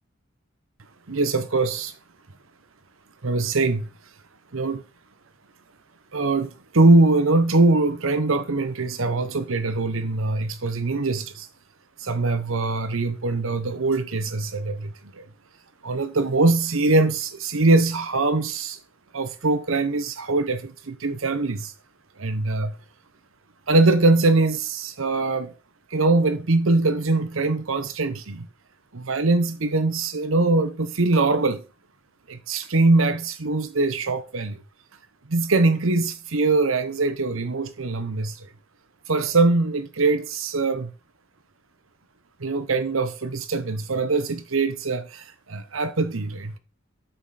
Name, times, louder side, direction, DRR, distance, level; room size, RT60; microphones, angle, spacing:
voice 1, 1.1-1.9 3.2-3.9 4.5-4.8 6.1-11.5 12.0-15.2 15.8-18.8 19.1-21.7 22.2-22.8 23.7-25.5 25.9-28.5 28.9-31.6 32.3-34.6 35.3-38.5 39.1-40.9 42.4-46.6, right 3 dB, 80° right, 0.9 m, -22 dB
8.0 x 6.3 x 4.1 m
head